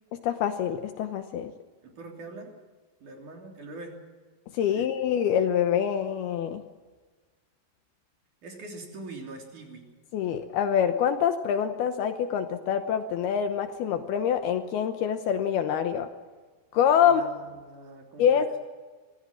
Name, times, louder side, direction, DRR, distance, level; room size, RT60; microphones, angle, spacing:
voice 1, 0.2-1.5 4.6-6.6 10.1-16.1 16.7-17.2 18.2-18.6, left 8 dB, 75° left, 7 dB, 2.6 m, -25 dB
voice 2, 1.8-2.5 3.0-4.0 4.7-4.9 8.4-9.9 17.0-18.5, right 2 dB, 45° right, 1 dB, 4.5 m, -43 dB
24.5 x 16.5 x 7.5 m, 1.4 s
omnidirectional pair, 5.2 m